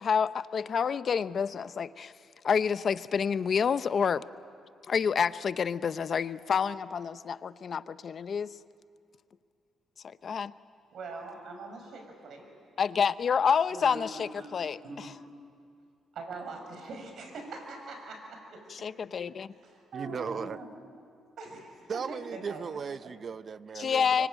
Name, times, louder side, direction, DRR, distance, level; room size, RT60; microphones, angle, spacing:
voice 1, 0.0-2.1 2.4-4.2 4.9-8.5 10.2-10.5 12.8-15.1 18.7-19.5 23.8-24.3, left 6 dB, 50° left, 14 dB, 0.7 m, -28 dB
voice 2, 10.9-12.5 13.7-15.1 16.1-18.6 19.5-20.7 21.4-22.2 22.5-22.8 23.8-23.9, right 3 dB, 65° right, 3 dB, 6.1 m, -43 dB
voice 3, 19.9-20.6 21.9-24.3, right 6 dB, 45° right, 15 dB, 0.6 m, -37 dB
24.5 x 24.0 x 9.1 m, 2.3 s
cardioid pair, 100°, 0 cm